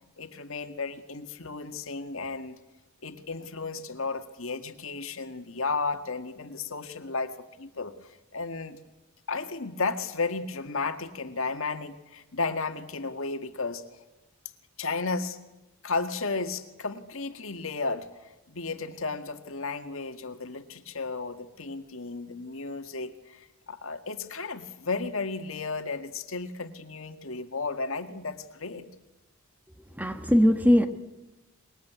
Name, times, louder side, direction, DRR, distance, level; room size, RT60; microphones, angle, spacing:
voice 1, 0.2-2.6 3.0-7.3 7.6-8.8 9.3-13.8 14.8-15.4 15.8-28.9, left 4 dB, 65° left, 8 dB, 1.9 m, -33 dB
voice 2, 30.0-30.9, equal, 5° right, 8 dB, 1.3 m, -20 dB
24.5 x 21.5 x 9.4 m, 1.0 s
head